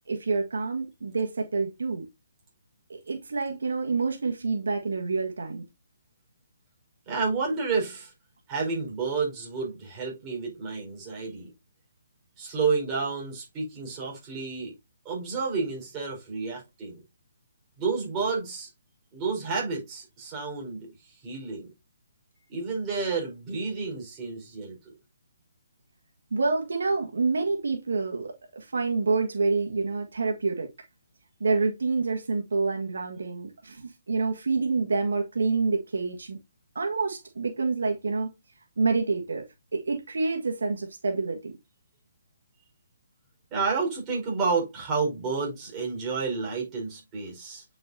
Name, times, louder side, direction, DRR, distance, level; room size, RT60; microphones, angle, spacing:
voice 1, 0.1-2.1 2.9-5.6 26.3-30.7 31.4-36.4 36.7-38.3 38.8-39.4 39.7-41.5, right 4 dB, 80° right, 1.6 m, -27 dB
voice 2, 7.1-8.1 8.5-11.5 12.4-14.7 15.0-17.0 17.8-18.7 19.1-21.7 22.5-24.8 43.5-47.6, right 4 dB, 20° right, 4.8 m, -30 dB
8.8 x 5.9 x 2.8 m
hypercardioid pair, 155°, 0 cm